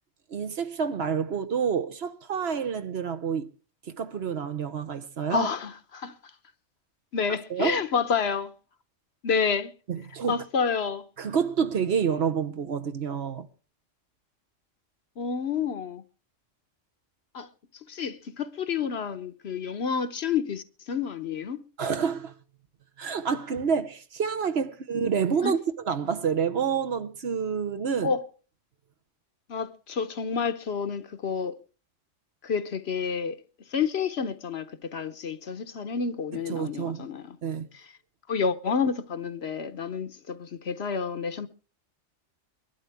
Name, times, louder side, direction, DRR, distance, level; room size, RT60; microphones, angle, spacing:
voice 1, 0.3-3.5 3.8-5.5 7.5-7.8 9.9-10.4 11.2-13.5 21.8-22.3 23.0-28.1 36.3-37.1 37.4-37.7, right 6 dB, 60° right, 1.1 m, -28 dB
voice 2, 5.3-6.1 7.1-8.5 9.2-9.7 10.3-11.0 15.2-16.0 17.3-17.5 17.9-21.6 25.4-25.6 28.0-28.2 29.5-31.6 32.4-33.4 33.7-37.3 38.3-41.5, left 6 dB, 60° left, 1.1 m, -29 dB
23.0 x 12.0 x 3.4 m
omnidirectional pair, 1.3 m